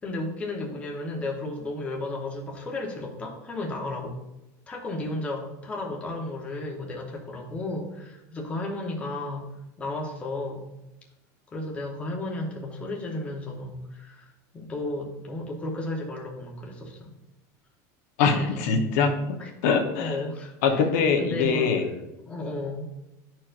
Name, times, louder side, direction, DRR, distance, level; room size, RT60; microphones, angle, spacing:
voice 1, 0.0-4.1 4.7-9.4 9.8-10.6 11.5-17.1 18.4-18.6 19.4-19.5 20.0-20.5 21.2-21.7 22.3-22.9, left 2 dB, 15° left, -2 dB, 0.9 m, -33 dB
voice 2, 18.2-20.2 20.6-21.9, left 5 dB, 70° left, 3 dB, 1.0 m, -23 dB
11.5 x 4.4 x 2.5 m, 0.94 s
cardioid pair, 170°, 9 cm